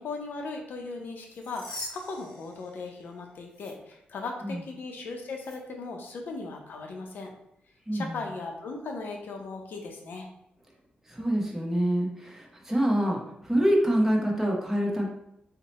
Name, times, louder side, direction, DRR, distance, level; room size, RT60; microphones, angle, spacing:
voice 1, 0.0-7.3 7.9-10.3, left 3 dB, 70° left, 2 dB, 0.6 m, -38 dB
sound 1, 1.1-3.1 3.5-3.7 5.3-5.6, left 1 dB, 20° left, 1.1 m, -43 dB
voice 2, 7.9-8.2 11.1-15.1, equal, 10° right, -1 dB, 0.8 m, -26 dB
2.7 x 2.1 x 4.0 m, 0.77 s
cardioid pair, 90°, 3 cm